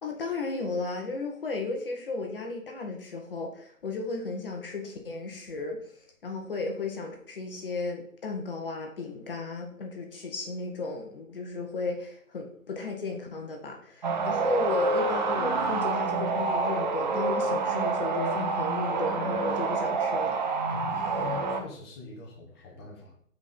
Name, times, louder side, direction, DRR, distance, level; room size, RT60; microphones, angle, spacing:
voice 1, 0.0-5.8 6.2-20.4 20.9-21.0, left 3 dB, 40° left, 2 dB, 1.4 m, -34 dB
sound 1, 14.0-21.6, right 4 dB, 35° right, 0.9 m, -27 dB
voice 2, 20.7-23.2, left 5 dB, 20° left, -3 dB, 1.3 m, -43 dB
6.6 x 4.8 x 5.3 m, 0.63 s
figure-of-eight pair, 155°, 42 cm